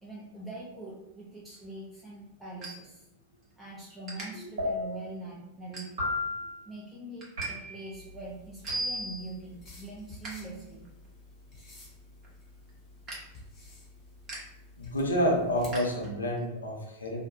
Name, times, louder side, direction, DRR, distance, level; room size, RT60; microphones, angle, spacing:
voice 1, 0.0-3.1 3.6-6.0 6.7-10.8, right 2 dB, 5° right, -7 dB, 0.5 m, -43 dB
sound 1, 1.5-3.5 3.8-4.3 4.8-5.1 5.6-6.3 6.7-7.5 7.8-7.9 8.3-8.9 9.4-10.3 10.7-16.5, right 2 dB, 30° right, 0.9 m, -47 dB
sound 2, 4.6-5.2 6.0-6.6 7.4-7.9 8.7-9.2, left 1 dB, 65° right, 1.2 m, -33 dB
sound 3, 7.9-15.8, left 2 dB, 30° left, 0.9 m, -52 dB
voice 2, 14.8-17.2, equal, 75° left, 0 dB, 0.5 m, -28 dB
2.4 x 2.1 x 2.8 m, 0.89 s
figure-of-eight pair, 90°, 0 cm